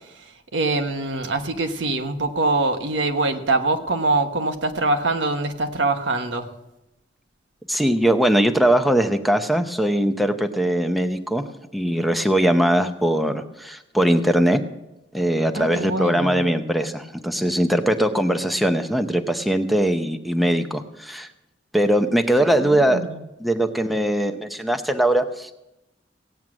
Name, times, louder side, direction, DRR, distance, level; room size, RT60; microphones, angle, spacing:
voice 1, 0.5-6.5 15.5-16.4 22.6-23.3, right 2 dB, 85° right, 6 dB, 1.2 m, -24 dB
voice 2, 7.7-11.4 11.7-14.6 15.1-21.3 21.7-23.0 23.4-25.5, right 1 dB, ahead, 7 dB, 0.7 m, -21 dB
16.5 x 9.2 x 6.1 m, 0.92 s
head